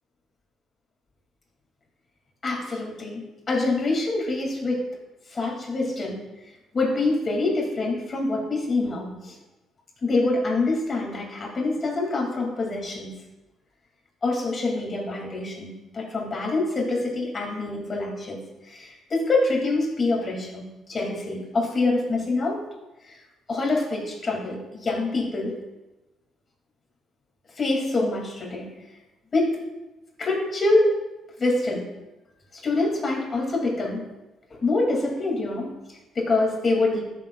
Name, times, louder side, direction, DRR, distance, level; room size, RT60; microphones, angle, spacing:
voice 1, 2.4-3.2 3.5-4.9 5.3-6.2 6.7-9.4 10.0-13.2 14.2-22.6 23.0-23.2 23.5-25.6 27.6-28.7 29.3-29.6 30.2-30.9 31.4-31.9 32.5-34.0 34.5-37.0, left 2 dB, 35° left, -1 dB, 2.8 m, -25 dB
12.5 x 6.9 x 2.5 m, 1.0 s
cardioid pair, 100°, 0 cm